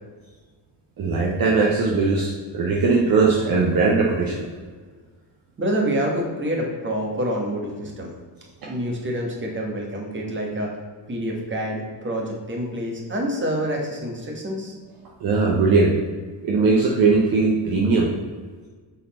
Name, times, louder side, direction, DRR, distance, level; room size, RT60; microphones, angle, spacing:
voice 1, 1.0-4.5 8.6-8.7 15.2-16.0 16.4-18.1, right 4 dB, 50° right, -1 dB, 0.8 m, -19 dB
voice 2, 5.6-8.1 8.6-10.7 11.1-14.7, equal, 25° right, 0 dB, 1.3 m, -27 dB
6.3 x 4.2 x 4.2 m, 1.5 s
cardioid pair, 130°, 46 cm